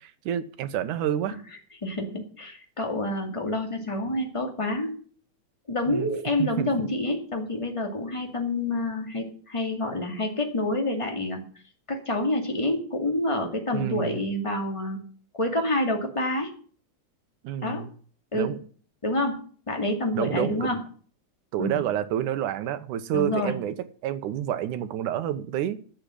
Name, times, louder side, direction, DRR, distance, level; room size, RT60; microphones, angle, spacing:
voice 1, 0.0-1.4 5.9-6.1 6.4-6.7 13.7-14.2 17.4-17.9 18.3-18.6 20.1-20.7 21.5-23.8 24.0-25.8, right 10 dB, 85° right, 2.4 m, -29 dB
voice 2, 1.8-4.9 5.7-11.4 11.9-15.0 15.4-16.5 17.6-17.9 18.3-18.5 19.0-20.8 21.6-21.8 23.1-23.5, left 1 dB, 10° left, 1.9 m, -28 dB
12.0 x 7.2 x 7.7 m
omnidirectional pair, 3.5 m